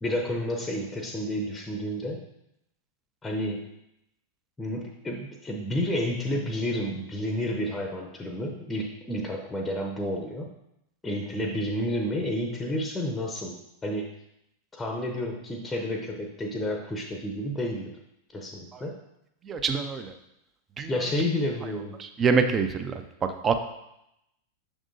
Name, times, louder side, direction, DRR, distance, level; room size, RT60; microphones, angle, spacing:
voice 1, 0.0-2.2 3.2-3.7 4.6-10.5 11.0-13.5 13.8-14.1 14.7-17.9 18.3-19.0 20.9-22.0, left 1 dB, 10° left, 2 dB, 0.7 m, -30 dB
voice 2, 19.4-20.1 20.8-21.0 22.0-23.7, right 5 dB, 25° right, 8 dB, 0.5 m, -26 dB
6.5 x 6.1 x 2.6 m, 0.83 s
figure-of-eight pair, 90°, 0 cm